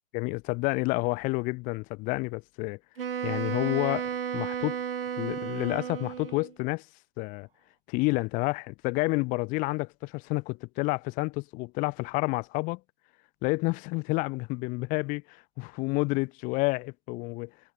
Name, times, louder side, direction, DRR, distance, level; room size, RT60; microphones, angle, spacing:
voice 1, 0.1-2.8 3.2-4.8 5.2-6.9 7.2-7.5 7.9-12.8 13.4-17.5, left 26 dB, 20° left, 4.6 m, -29 dB
Wind instrument woodwind instrument, 3.0-6.5, right 8 dB, 50° right, 6.6 m, -33 dB
figure-of-eight pair, 135°, 36 cm